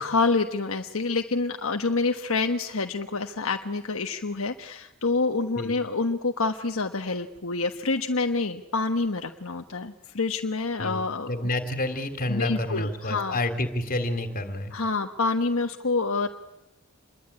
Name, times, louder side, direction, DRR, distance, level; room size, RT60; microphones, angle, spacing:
voice 1, 0.0-11.5 12.3-13.4 14.7-16.3, left 3 dB, 70° left, 5 dB, 1.3 m, -27 dB
voice 2, 11.3-14.7, left 1 dB, 40° left, 8 dB, 3.4 m, -29 dB
28.0 x 22.0 x 9.7 m, 0.91 s
head